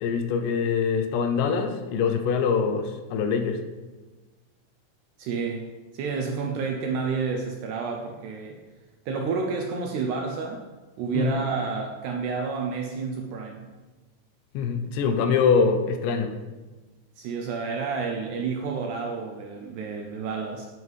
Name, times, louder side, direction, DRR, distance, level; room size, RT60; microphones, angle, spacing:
voice 1, 0.0-3.6 11.1-11.4 14.5-16.3, left 5 dB, 80° left, 6 dB, 2.1 m, -24 dB
voice 2, 5.2-5.7 5.9-8.6 9.1-10.6 11.0-13.7 17.2-20.7, right 5 dB, 80° right, 2 dB, 1.8 m, -30 dB
9.3 x 5.4 x 3.2 m, 1.2 s
omnidirectional pair, 3.9 m